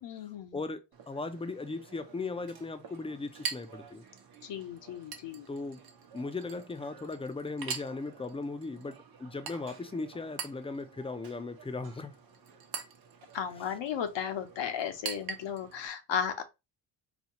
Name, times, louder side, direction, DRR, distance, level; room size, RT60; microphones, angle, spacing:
voice 1, 0.0-0.6 4.4-5.5 13.3-16.5, left 8 dB, 65° left, 0.8 m, -35 dB
voice 2, 0.5-4.0 5.5-5.8 6.1-12.1, left 3 dB, 15° left, 0.4 m, -38 dB
Chink clink, 0.9-15.9, right 6 dB, 50° right, 0.8 m, -45 dB
4.2 x 2.3 x 2.9 m
cardioid pair, 110°, 46 cm